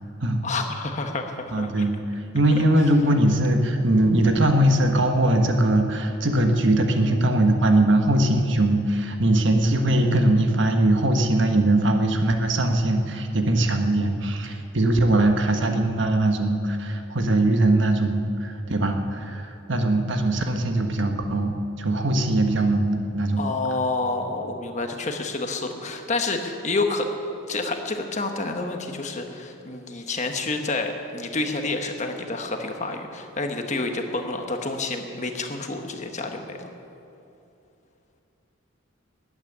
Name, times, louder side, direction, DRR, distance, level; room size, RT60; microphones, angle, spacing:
voice 1, 0.4-1.7 23.4-27.1 27.5-36.7, left 3 dB, 35° left, 4 dB, 1.3 m, -29 dB
voice 2, 1.5-2.0 2.3-23.4, right 1 dB, 60° right, 5 dB, 1.3 m, -21 dB
14.0 x 9.0 x 9.8 m, 2.8 s
head